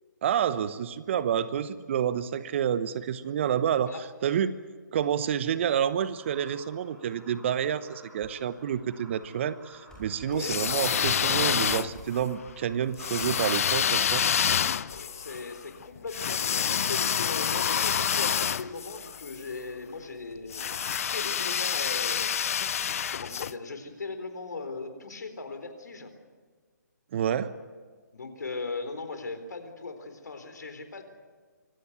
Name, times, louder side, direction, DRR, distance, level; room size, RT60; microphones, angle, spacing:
voice 1, 0.2-4.0 4.2-4.5 4.9-14.2 27.1-27.5, right 9 dB, 40° right, 15 dB, 1.0 m, -28 dB
sound 1, 6.1-14.1, right 1 dB, 10° right, 4.8 m, -52 dB
sound 2, 9.9-10.1 10.6-10.9 11.9-12.1 13.2-13.4 14.9-15.1, left 1 dB, 5° left, 7.7 m, -52 dB
voice 2, 10.3-10.6 14.9-22.6 23.1-26.1 28.1-31.0, left 3 dB, 70° left, 8 dB, 4.0 m, -39 dB
sound 3, 10.3-12.2 13.0-19.4 20.5-23.5, left 8 dB, 50° left, 0.6 m, -28 dB
25.0 x 15.5 x 9.5 m, 1.5 s
figure-of-eight pair, 145°, 10 cm